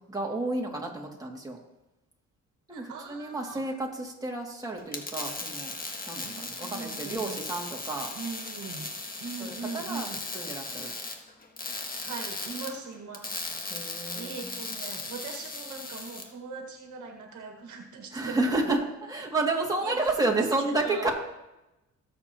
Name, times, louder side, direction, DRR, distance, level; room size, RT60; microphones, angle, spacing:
voice 1, 0.0-1.6 2.7-5.7 6.1-8.1 9.4-10.9 13.7-14.6 18.1-21.1, right 2 dB, 10° right, -1 dB, 2.5 m, -31 dB
voice 2, 2.7-3.7 6.2-7.4 8.1-8.9 9.2-10.2 12.0-13.9 14.1-18.8 19.8-20.0 20.7-21.1, right 4 dB, 80° right, 3 dB, 1.8 m, -41 dB
sound 1, 4.8-16.2, left 3 dB, 30° left, 1.8 m, -37 dB
18.5 x 7.5 x 3.0 m, 0.94 s
cardioid pair, 90°, 30 cm